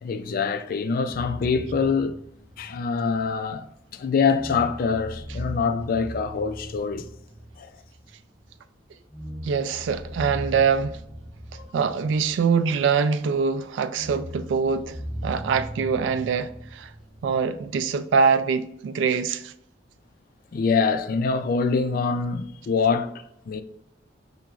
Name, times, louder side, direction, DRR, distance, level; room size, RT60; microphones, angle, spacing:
voice 1, 0.0-2.2 2.6-3.7 3.9-7.1 7.6-7.7 11.5-11.7 20.5-23.1 23.5-23.6, left 5 dB, 55° left, 0.3 m, -24 dB
sound 1, 1.1-3.9 4.3-8.5 9.1-13.2 13.9-17.9, equal, 10° right, 0.7 m, -39 dB
voice 2, 9.4-11.0 11.7-15.0 15.2-16.9 17.2-19.5, right 5 dB, 90° right, 0.3 m, -24 dB
5.9 x 2.9 x 2.3 m
head